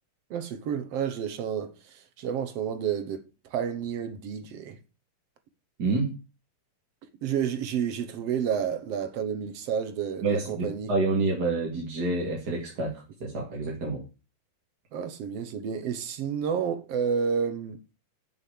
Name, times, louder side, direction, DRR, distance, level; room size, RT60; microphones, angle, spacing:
voice 1, 0.3-4.8 7.2-10.9 14.9-17.8, right 7 dB, 60° right, 1.8 m, -30 dB
voice 2, 5.8-6.1 10.2-14.0, right 3 dB, 35° right, 2.2 m, -28 dB
7.2 x 7.1 x 7.9 m
omnidirectional pair, 3.8 m